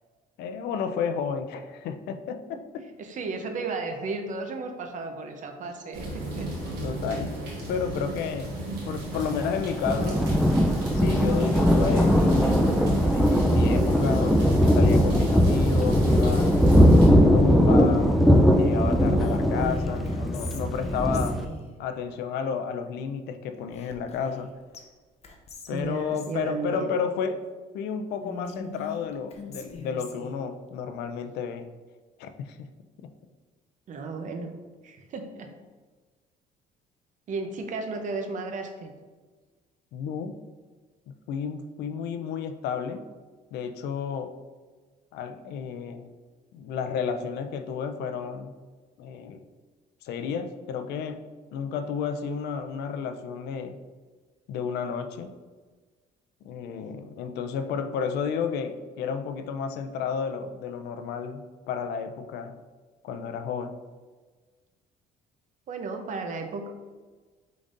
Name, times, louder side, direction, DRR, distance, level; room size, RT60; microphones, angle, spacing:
voice 1, 0.4-2.9 5.6-5.7 6.8-7.4 7.7-8.6 8.9-10.3 10.9-12.2 13.1-16.6 17.1-18.1 18.6-21.4 21.8-24.5 25.7-27.4 27.7-31.7 32.2-32.7 39.9-40.3 41.3-43.0 43.5-44.3 45.1-46.1 46.5-48.5 49.0-49.5 50.0-51.2 51.5-53.7 54.5-55.3 56.4-62.6 63.0-63.8, left 6 dB, 80° left, 8 dB, 0.4 m, -31 dB
voice 2, 3.0-6.5 25.7-26.9 33.9-34.5 34.8-35.5 37.3-38.9 65.7-66.7, right 3 dB, 50° right, 5 dB, 0.7 m, -34 dB
sound 1, 5.9-17.1, right 1 dB, 80° right, 1.4 m, -36 dB
Thunder, 9.1-21.4, equal, ahead, 0.3 m, -20 dB
Whispering, 18.8-21.7 23.7-24.5 24.7-24.8 25.2-26.4 28.2-30.3, left 4 dB, 40° left, 0.7 m, -40 dB
5.1 x 3.8 x 2.5 m, 1.4 s
cardioid pair, 110°, 17 cm